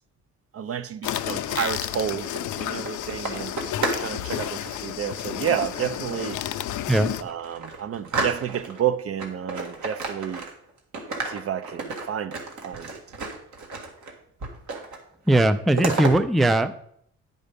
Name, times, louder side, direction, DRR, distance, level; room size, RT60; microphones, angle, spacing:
voice 1, 0.5-3.5 4.0-6.4 7.2-10.5 11.2-12.4 12.6-13.0, right 9 dB, 50° right, 0.6 m, -30 dB
sound 1, 1.0-7.2, left 12 dB, 75° left, 0.6 m, -31 dB
sound 2, 2.1-4.1 4.4-4.8 5.6-6.4 6.8-6.9 7.3-8.8 9.2-10.7 10.9-14.1 14.4-15.0 15.3-16.1, right 3 dB, 70° right, 1.9 m, -32 dB
voice 2, 15.3-16.7, right 1 dB, ahead, 0.4 m, -19 dB
9.7 x 5.3 x 5.2 m
cardioid pair, 90°, 30 cm